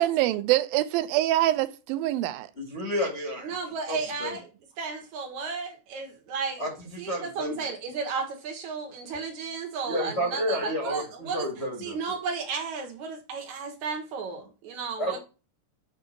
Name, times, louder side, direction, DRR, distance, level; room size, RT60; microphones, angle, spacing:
voice 1, 0.0-2.5, right 14 dB, 90° right, 2.4 m, -24 dB
voice 2, 2.5-3.5 3.9-4.3 6.6-7.6 9.8-12.1 15.0-15.2, equal, 30° left, 1.3 m, -31 dB
voice 3, 3.4-4.5 4.8-6.7 7.0-11.5 11.8-15.2, right 5 dB, 60° right, 2.6 m, -34 dB
7.8 x 3.7 x 6.4 m
omnidirectional pair, 4.0 m